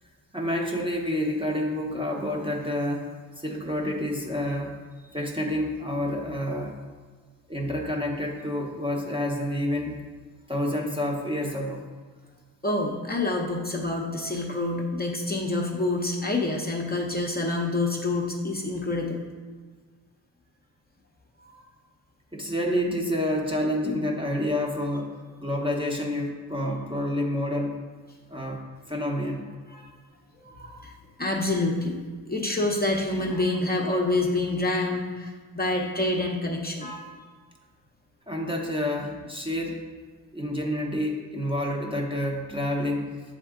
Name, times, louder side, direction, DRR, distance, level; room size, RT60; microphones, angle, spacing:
voice 1, 0.3-3.1 3.4-4.8 5.1-6.8 7.5-10.0 10.5-11.8 22.3-27.8 28.3-28.6 28.9-29.5 38.3-39.9 40.3-43.1, left 1 dB, 10° right, 0 dB, 0.8 m, -28 dB
voice 2, 12.6-19.2 21.4-21.7 29.7-29.9 30.4-30.9 31.2-32.0 32.3-37.1, left 2 dB, 20° left, 0 dB, 0.8 m, -27 dB
7.5 x 3.6 x 3.7 m, 1.5 s
cardioid pair, 70°, 44 cm